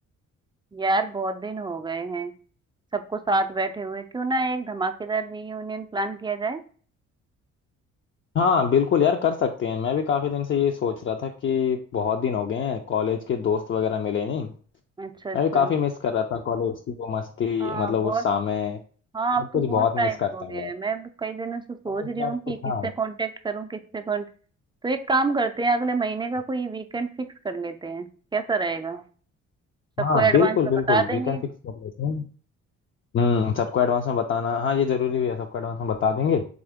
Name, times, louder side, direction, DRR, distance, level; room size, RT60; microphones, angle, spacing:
voice 1, 0.7-2.3 2.9-6.6 15.0-15.7 17.6-18.2 19.1-24.3 24.8-29.0 30.0-30.6 30.9-31.4, right 3 dB, 15° right, 8 dB, 0.4 m, -27 dB
voice 2, 8.3-14.5 15.3-18.8 19.5-20.7 22.0-22.3 22.6-22.9 30.0-31.4 31.6-32.2 33.1-36.4, left 7 dB, 40° left, 4 dB, 0.5 m, -24 dB
3.7 x 3.1 x 3.5 m, 0.42 s
cardioid pair, 90°, 30 cm